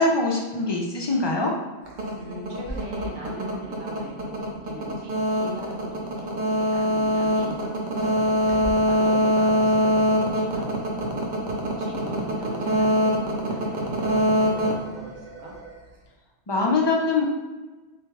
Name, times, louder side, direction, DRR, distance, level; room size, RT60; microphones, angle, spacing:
voice 1, 0.0-1.5 16.5-17.2, left 3 dB, 40° left, -1 dB, 0.4 m, -23 dB
sound 1, 1.9-15.7, equal, 50° right, 0.8 m, -24 dB
voice 2, 2.2-8.2 8.8-11.1 11.7-15.6, right 1 dB, 85° right, -2 dB, 1.3 m, -40 dB
3.4 x 3.3 x 3.3 m, 1.2 s
omnidirectional pair, 1.2 m